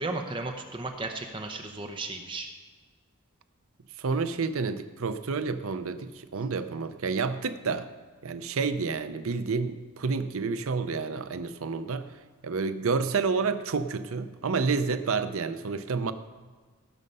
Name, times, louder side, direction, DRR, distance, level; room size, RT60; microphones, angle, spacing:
voice 1, 0.0-2.5, right 2 dB, 20° right, 4 dB, 0.7 m, -34 dB
voice 2, 4.0-7.9 8.2-12.1 12.4-16.1, right 4 dB, 75° right, 11 dB, 0.6 m, -29 dB
17.5 x 6.5 x 5.4 m, 1.4 s
head